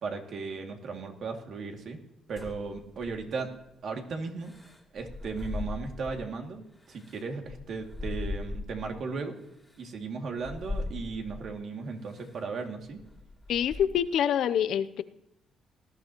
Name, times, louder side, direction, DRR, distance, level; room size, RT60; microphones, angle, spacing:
voice 1, 0.0-2.0 2.3-3.5 3.8-4.5 4.9-9.4 9.8-13.0, right 4 dB, 60° right, 2 dB, 2.4 m, -36 dB
sound 1, 2.4-3.5 4.4-6.3 6.8-9.0 9.6-9.8 10.4-11.5 12.1-12.4 12.8-14.2, left 2 dB, 10° left, 2.7 m, -39 dB
voice 2, 13.5-15.0, left 9 dB, 75° left, 13 dB, 0.6 m, -26 dB
19.0 x 12.0 x 3.0 m, 0.81 s
cardioid pair, 90°, 0 cm